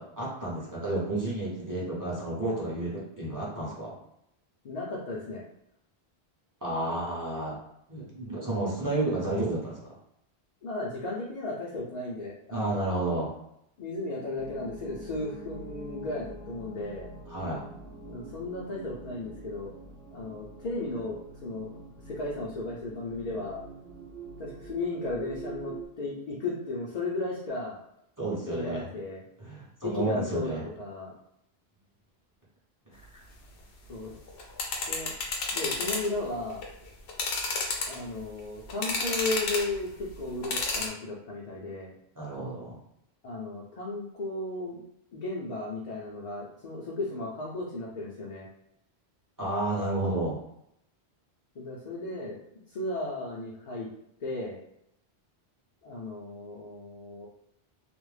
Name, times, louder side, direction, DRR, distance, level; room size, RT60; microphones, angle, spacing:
voice 1, 0.0-4.0 6.6-7.5 7.9-9.8 12.5-13.3 17.3-17.6 28.2-28.9 29.4-30.7 32.9-33.1 42.2-42.8 49.4-50.3, right 2 dB, 20° right, -7 dB, 0.6 m, -31 dB
voice 2, 4.6-5.4 10.6-13.1 13.8-17.1 18.1-19.7 20.1-23.6 24.4-27.8 28.5-29.2 29.8-31.1 33.9-34.1 34.9-35.1 35.5-36.6 37.9-41.9 43.2-44.8 45.1-48.5 51.6-52.4 52.7-53.9 54.2-54.6 55.8-57.3, left 2 dB, 55° left, -5 dB, 0.5 m, -35 dB
sound 1, 14.4-25.9, right 3 dB, 75° right, 0.9 m, -45 dB
sound 2, 34.3-36.1 36.5-36.6 37.1-38.2 38.7-39.8 40.4-40.9, left 3 dB, 75° left, 0.8 m, -31 dB
2.4 x 2.0 x 3.2 m, 0.76 s
omnidirectional pair, 1.1 m